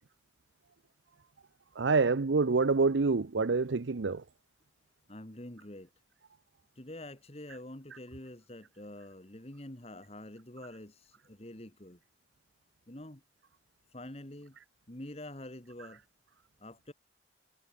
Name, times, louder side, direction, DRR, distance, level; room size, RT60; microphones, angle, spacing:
voice 1, 1.7-4.2 7.9-8.0, right 4 dB, 80° right, 0.7 m, -27 dB
voice 2, 5.1-5.9 6.8-12.0 12.9-13.2 13.9-14.6 14.9-16.0 16.6-16.9, left 1 dB, 35° left, 2.0 m, -46 dB
head